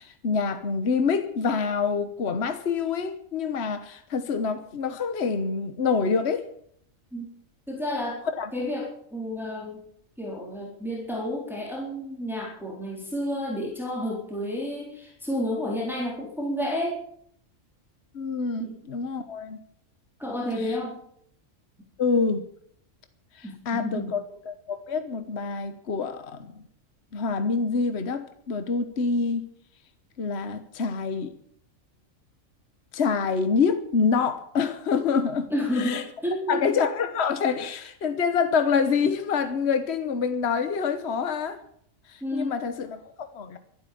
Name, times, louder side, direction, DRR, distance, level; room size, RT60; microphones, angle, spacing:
voice 1, 0.0-6.5 8.4-8.5 18.1-19.6 20.6-20.8 22.0-22.4 23.4-26.5 27.1-29.5 30.2-31.3 32.9-36.0 36.5-41.6 42.1-43.6, left 5 dB, 55° left, 1.4 m, -26 dB
voice 2, 7.7-8.2 8.5-9.8 10.2-17.0 18.6-18.7 20.2-21.0 23.4-24.1 35.5-36.6 42.2-42.5, left 1 dB, ahead, 4.1 m, -30 dB
13.0 x 12.0 x 8.7 m
omnidirectional pair, 1.4 m